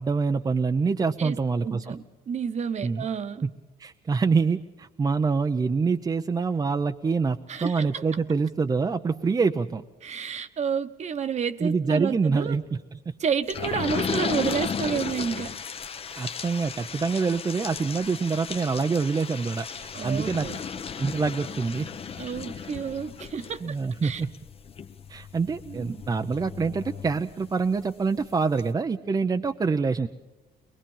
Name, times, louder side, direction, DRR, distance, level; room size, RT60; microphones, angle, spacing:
voice 1, 0.0-2.0 2.8-3.1 3.4-3.5 3.8-9.8 11.6-13.1 16.2-20.5 21.0-21.9 23.6-24.3 25.1-30.1, right 4 dB, 25° right, 6 dB, 0.6 m, -26 dB
voice 2, 1.2-3.5 7.5-8.0 10.0-12.6 13.2-15.5 19.9-20.6 22.2-23.6 24.0-24.2 25.6-26.0, right 7 dB, 40° right, 11 dB, 1.2 m, -30 dB
sound 1, 13.5-27.8 28.2-28.3 28.6-28.7, left 6 dB, 35° left, 0.9 m, -35 dB
22.5 x 21.5 x 5.6 m, 1.1 s
cardioid pair, 110°, 17 cm